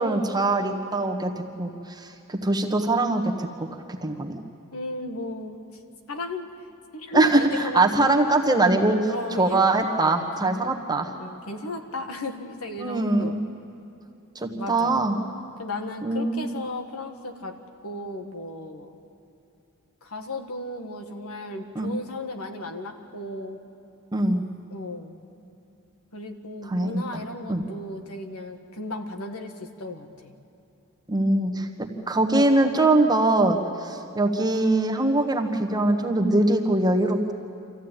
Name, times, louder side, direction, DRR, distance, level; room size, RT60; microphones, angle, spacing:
voice 1, 0.0-3.7 4.0-4.3 7.1-11.1 12.8-13.3 14.3-15.2 16.0-16.5 21.7-21.9 24.1-24.4 26.7-27.2 27.5-27.6 31.1-37.3, right 2 dB, 20° right, 3 dB, 1.5 m, -22 dB
voice 2, 4.7-5.6 6.1-6.5 6.9-8.2 9.1-10.6 11.2-13.3 14.6-15.0 15.6-17.5 17.8-18.9 20.0-23.6 24.7-25.2 26.1-30.3, left 2 dB, 80° left, 5 dB, 1.7 m, -35 dB
25.5 x 15.0 x 9.1 m, 2.7 s
head